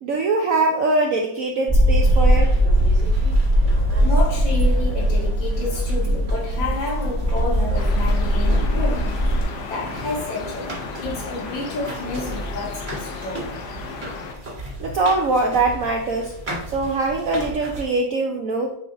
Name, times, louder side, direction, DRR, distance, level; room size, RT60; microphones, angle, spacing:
voice 1, 0.0-2.5 14.8-16.3 16.7-18.7, right 3 dB, 65° right, 2 dB, 0.8 m, -22 dB
sound 1, 1.7-9.4, equal, ahead, 0.6 m, -19 dB
sound 2, 2.0-17.9, right 1 dB, 30° right, 1.4 m, -36 dB
voice 2, 2.1-2.6 2.9-9.1 9.5-10.7 11.0-13.6, left 2 dB, 85° left, -5 dB, 2.2 m, -30 dB
sound 3, 7.7-14.3, left 5 dB, 65° left, 1.3 m, -34 dB
9.0 x 3.0 x 3.7 m, 0.73 s
omnidirectional pair, 2.0 m